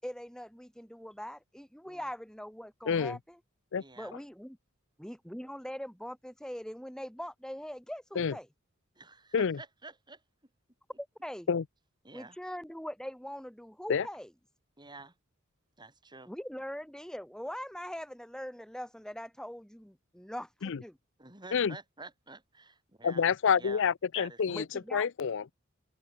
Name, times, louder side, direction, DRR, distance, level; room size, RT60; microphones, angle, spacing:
voice 1, 0.0-3.4 4.0-4.6 5.0-8.5 11.0-11.5 12.1-14.3 16.3-21.0 24.5-25.1, equal, 5° left, 4.8 m, -42 dB
voice 2, 2.9-3.2 3.7-3.8 8.2-8.3 9.3-9.6 11.5-11.6 13.9-14.1 20.6-20.8 21.5-21.8 23.0-24.6 24.9-25.5, left 6 dB, 60° left, 0.5 m, -28 dB
voice 3, 3.8-4.1 9.0-10.2 12.0-12.4 14.8-15.1 15.8-16.3 21.2-23.3 23.6-23.8 24.1-24.7, right 3 dB, 20° right, 3.6 m, -49 dB
open air
head